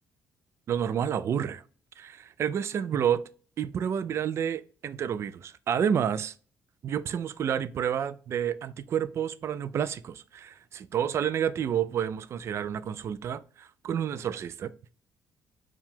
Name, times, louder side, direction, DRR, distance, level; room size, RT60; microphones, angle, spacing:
voice 1, 0.7-1.6 2.0-3.2 3.6-6.3 6.8-14.7, right 8 dB, 50° right, 0.3 m, -29 dB
4.6 x 2.3 x 3.5 m
cardioid pair, 100°, 6 cm